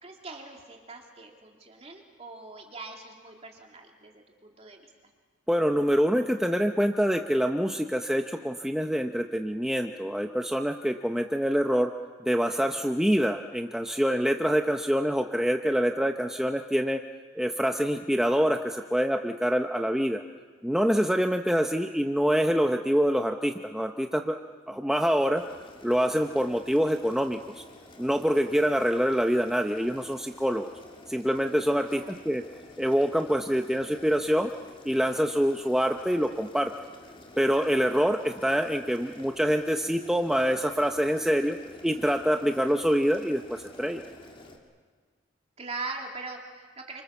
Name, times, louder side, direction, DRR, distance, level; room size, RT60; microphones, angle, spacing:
voice 1, 0.0-4.9 31.9-32.2 45.6-47.0, right 3 dB, 35° right, 1 dB, 3.0 m, -41 dB
voice 2, 5.5-11.9 12.2-17.0 17.4-20.2 20.6-24.4 24.7-25.4 25.8-27.6 28.0-30.7 31.1-32.4 32.8-34.5 34.8-36.7 37.4-41.6 41.8-44.0, equal, 5° right, 4 dB, 0.8 m, -25 dB
Boiling, 25.3-44.6, left 1 dB, 30° left, 3.1 m, -50 dB
29.5 x 25.5 x 7.2 m, 1.5 s
head